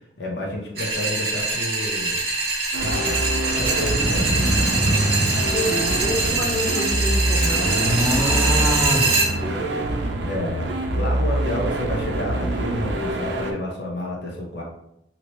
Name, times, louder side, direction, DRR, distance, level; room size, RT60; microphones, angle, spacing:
voice 1, 0.2-2.2 2.7-3.2 3.5-4.5 10.2-14.6, left 1 dB, 75° left, -2 dB, 0.7 m, -30 dB
sound 1, 0.8-9.3, right 3 dB, 60° right, 0.9 m, -24 dB
sound 2, 2.7-13.5, right 1 dB, 80° right, 0.5 m, -25 dB
sound 3, 3.8-6.4 6.9-9.7, right 1 dB, 10° right, 0.5 m, -25 dB
voice 2, 5.4-9.8, left 1 dB, 30° left, -4 dB, 0.8 m, -30 dB
2.8 x 2.7 x 3.0 m, 0.79 s
head